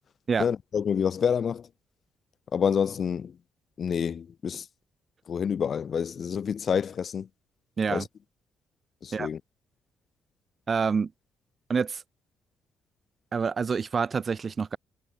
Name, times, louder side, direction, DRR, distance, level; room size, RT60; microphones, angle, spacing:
voice 1, 0.4-1.7 2.5-3.3 3.8-4.6 5.3-7.3 7.9-8.0 9.0-9.4, left 7 dB, 50° left, 1.4 m, -28 dB
voice 2, 10.7-11.1 11.7-12.0 13.3-14.8, right 5 dB, 40° right, 4.5 m, -27 dB
cardioid pair, 90°, 0 cm